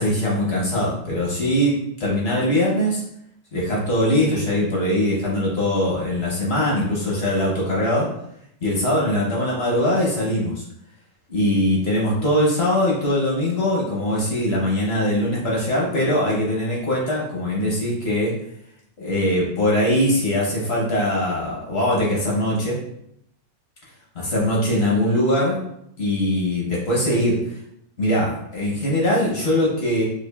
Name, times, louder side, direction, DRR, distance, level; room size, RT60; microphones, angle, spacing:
voice 1, 0.0-3.0 3.5-8.1 8.6-10.6 11.3-18.3 19.0-22.8 24.1-25.6 26.0-27.6 28.0-30.0, left 1 dB, 50° left, -4 dB, 0.7 m, -21 dB
4.7 x 2.4 x 2.3 m, 0.75 s
omnidirectional pair, 2.0 m